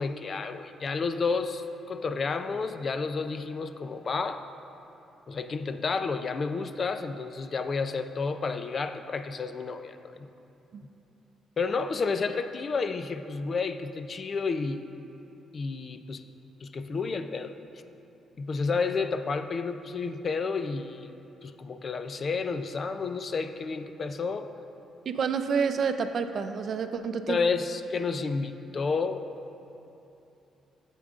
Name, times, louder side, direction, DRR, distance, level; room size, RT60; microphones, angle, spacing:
voice 1, 0.0-4.4 5.3-10.3 11.6-14.9 15.5-16.2 16.6-17.5 18.4-21.1 21.4-24.5 27.3-29.3, left 4 dB, 45° left, 9 dB, 0.4 m, -31 dB
voice 2, 25.1-27.4, right 6 dB, 55° right, 8 dB, 0.5 m, -28 dB
12.5 x 8.3 x 2.5 m, 2.9 s
cardioid pair, 90°, 0 cm